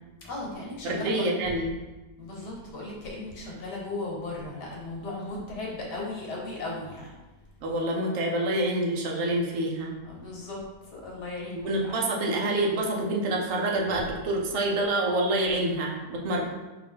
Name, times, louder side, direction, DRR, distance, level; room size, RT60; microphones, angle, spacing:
voice 1, 0.2-1.2 2.2-7.1 10.1-10.6 10.9-12.0, left 2 dB, 70° left, -2 dB, 1.6 m, -36 dB
voice 2, 0.8-1.7 7.6-9.9 11.6-16.4, right 1 dB, 55° right, -1 dB, 0.8 m, -27 dB
4.6 x 2.6 x 3.7 m, 1.1 s
omnidirectional pair, 1.9 m